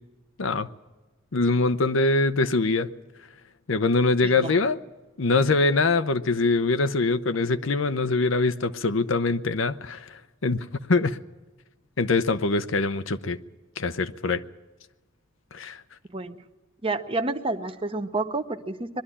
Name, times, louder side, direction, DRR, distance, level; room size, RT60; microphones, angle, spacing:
voice 1, 1.3-2.9 3.7-4.8 5.2-10.6 10.9-11.2 12.0-13.4 13.8-14.4 15.5-15.8, left 3 dB, 75° left, 0.7 m, -23 dB
voice 2, 4.2-4.5 16.1-16.4 16.8-19.0, right 3 dB, 25° right, 0.8 m, -29 dB
21.5 x 12.5 x 9.9 m
head